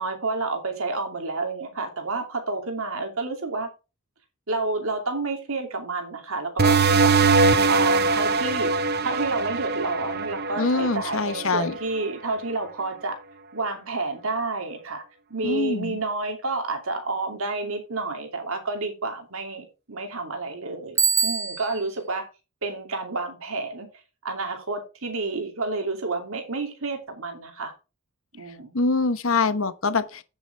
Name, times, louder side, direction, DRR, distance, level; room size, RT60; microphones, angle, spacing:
voice 1, 0.0-3.7 4.5-7.2 7.7-8.7 9.0-13.2 13.5-15.0 15.3-22.3 22.6-23.9 24.2-27.7 28.3-28.8, right 3 dB, 70° right, 2.7 m, -30 dB
sound 1, 6.6-11.8, right 4 dB, 45° right, 0.8 m, -22 dB
voice 2, 10.6-11.7 15.4-16.0 28.7-30.2, left 3 dB, 65° left, 1.0 m, -24 dB
Bicycle bell, 21.0-21.9, right 6 dB, 15° right, 0.3 m, -24 dB
9.5 x 8.1 x 3.4 m
head